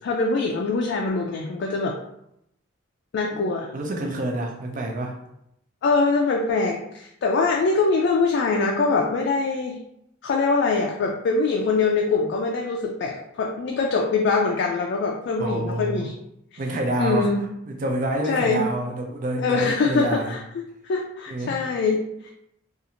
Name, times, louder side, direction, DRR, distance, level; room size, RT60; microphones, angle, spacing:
voice 1, 0.0-2.0 3.1-3.7 5.8-9.8 10.2-16.2 16.5-16.6 17.0-17.5 18.2-18.6 19.4-20.4 20.8-22.3, left 4 dB, 60° left, 1 dB, 0.3 m, -23 dB
voice 2, 3.7-5.2 15.4-16.1 16.6-17.3 17.7-20.4 21.3-21.5, right 1 dB, 45° right, 2 dB, 0.4 m, -27 dB
2.5 x 2.4 x 2.8 m, 0.77 s
head